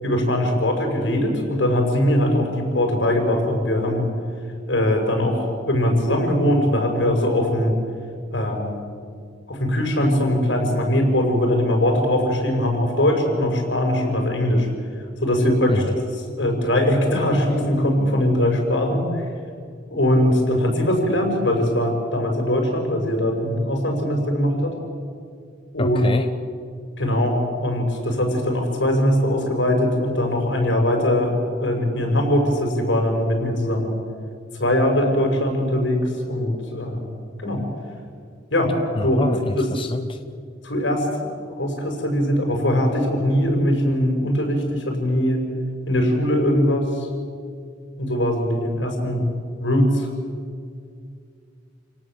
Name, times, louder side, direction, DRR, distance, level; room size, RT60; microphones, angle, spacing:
voice 1, 0.0-4.1 4.7-7.7 8.3-8.8 9.5-14.7 15.2-15.8 16.4-19.1 19.9-24.8 25.7-26.0 27.0-33.9 34.6-37.1 37.4-37.6 38.5-38.7 39.0-39.3 39.5-39.7 40.6-45.4 45.9-47.1 48.0-49.2 49.6-50.1, left 1 dB, 80° left, 2 dB, 5.7 m, -21 dB
voice 2, 25.8-26.3 38.9-40.2, left 2 dB, 30° left, 8 dB, 0.8 m, -26 dB
29.5 x 18.0 x 7.6 m, 2.2 s
head